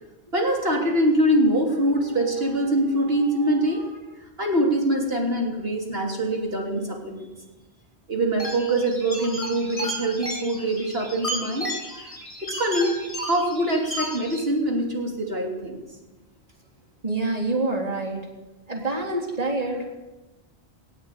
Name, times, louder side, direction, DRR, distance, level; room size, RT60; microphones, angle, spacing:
voice 1, 0.3-7.3 8.1-12.1 12.5-13.0 13.3-15.8, right 1 dB, 65° right, 0 dB, 3.5 m, -24 dB
sound 1, 8.4-14.4, equal, 30° left, 7.4 m, -33 dB
voice 2, 17.0-18.3 18.7-20.0, right 2 dB, 35° right, 0 dB, 3.7 m, -26 dB
19.5 x 19.0 x 8.4 m, 1.1 s
omnidirectional pair, 1.1 m